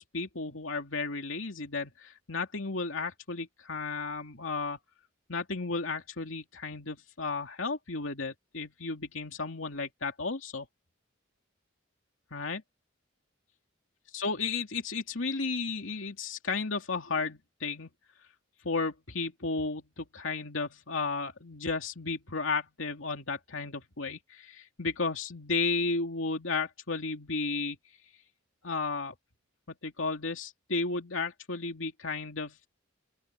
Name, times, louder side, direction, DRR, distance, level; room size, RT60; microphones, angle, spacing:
voice 1, 0.0-4.8 5.3-10.7 12.3-12.6 14.1-17.9 18.6-27.8 28.6-29.1 29.8-32.7, left 4 dB, 85° left, 2.6 m, -33 dB
open air
head